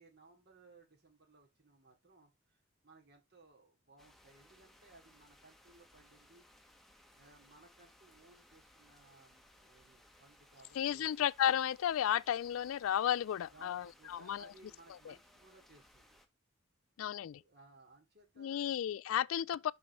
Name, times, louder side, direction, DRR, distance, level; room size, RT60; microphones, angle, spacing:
voice 1, 0.0-6.4 7.1-11.1 13.5-16.2 17.4-18.7, right 3 dB, 55° right, 3.0 m, -62 dB
sound 1, 4.0-16.3, left 1 dB, ahead, 1.1 m, -64 dB
voice 2, 10.7-14.5 15.1-15.2 17.0-17.4 18.4-19.7, left 10 dB, 90° left, 0.3 m, -33 dB
6.2 x 6.0 x 4.5 m
head